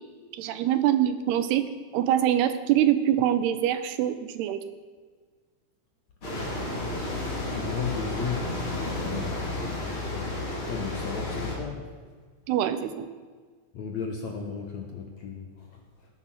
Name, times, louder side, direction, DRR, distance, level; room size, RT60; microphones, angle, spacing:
voice 1, 0.3-1.7 1.9-4.6 12.5-13.1, right 11 dB, 80° right, 11 dB, 2.9 m, -24 dB
sound 1, 6.2-11.6, left 2 dB, 30° left, 4.1 m, -32 dB
voice 2, 7.2-11.9 13.7-15.8, left 5 dB, 60° left, 2 dB, 1.9 m, -36 dB
18.5 x 9.9 x 6.0 m, 1.5 s
omnidirectional pair, 4.7 m